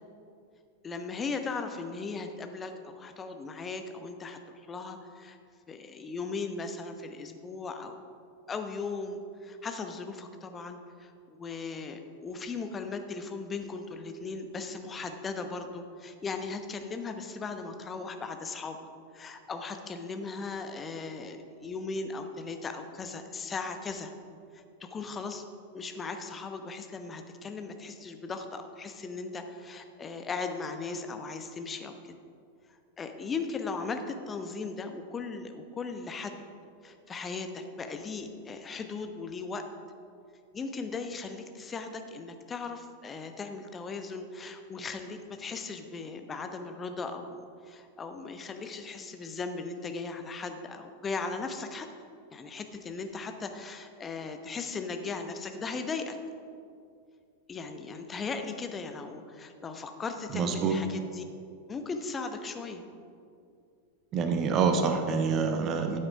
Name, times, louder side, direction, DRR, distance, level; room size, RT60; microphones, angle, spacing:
voice 1, 0.8-5.4 5.7-7.9 8.5-18.8 19.1-24.1 24.5-25.4 25.7-32.1 33.0-36.4 36.8-39.6 40.5-51.9 52.3-56.2 57.5-61.2 61.7-62.8, left 4 dB, 20° left, 6 dB, 1.0 m, -38 dB
voice 2, 60.3-60.7 64.1-66.0, right 5 dB, 35° right, 6 dB, 0.9 m, -26 dB
13.5 x 7.9 x 5.0 m, 2.4 s
figure-of-eight pair, 90°, 0 cm